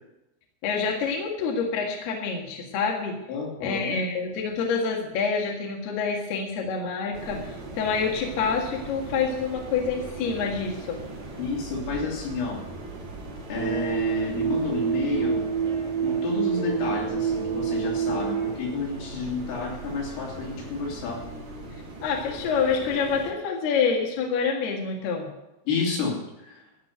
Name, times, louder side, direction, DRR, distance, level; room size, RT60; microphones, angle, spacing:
voice 1, 0.6-3.2 3.6-11.0 22.0-25.3, left 5 dB, 60° left, 0 dB, 3.4 m, -27 dB
voice 2, 3.3-4.0 11.4-12.6 13.5-15.5 16.0-21.3 25.7-26.6, left 4 dB, 80° left, -2 dB, 5.6 m, -30 dB
sound 1, 7.1-23.3, right 2 dB, 40° right, 3.3 m, -40 dB
sound 2, 13.6-18.5, right 7 dB, 55° right, 2.9 m, -27 dB
14.0 x 7.8 x 8.1 m, 0.92 s
omnidirectional pair, 5.8 m